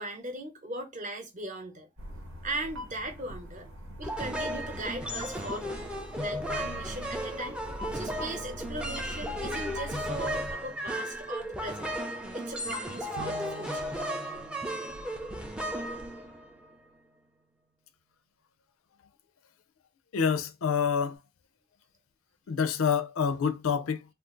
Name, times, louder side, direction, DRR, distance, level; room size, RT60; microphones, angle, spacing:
voice 1, 0.0-1.9 2.4-3.7 4.0-5.8 6.1-7.6 7.9-11.9 12.3-14.1, right 2 dB, 35° right, 0.8 m, -39 dB
sound 1, 2.0-10.5, left 1 dB, 90° right, 1.1 m, -42 dB
sound 2, 4.0-16.7, equal, 5° right, 0.4 m, -35 dB
Bowed string instrument, 13.2-16.4, right 3 dB, 65° right, 0.9 m, -47 dB
voice 2, 20.1-21.2 22.5-24.0, left 6 dB, 85° left, 0.4 m, -27 dB
2.5 x 2.4 x 3.7 m
head